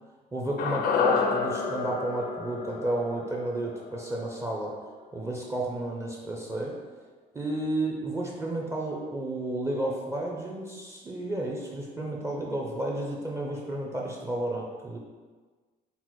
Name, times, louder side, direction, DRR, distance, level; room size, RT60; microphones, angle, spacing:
voice 1, 0.3-4.7 5.1-6.8 7.3-15.0, right 1 dB, 15° right, -1 dB, 0.5 m, -32 dB
sound 1, 0.6-4.9 5.2-5.3, left 5 dB, 60° left, 0.4 m, -30 dB
4.0 x 2.0 x 4.5 m, 1.4 s
cardioid pair, 110°, 17 cm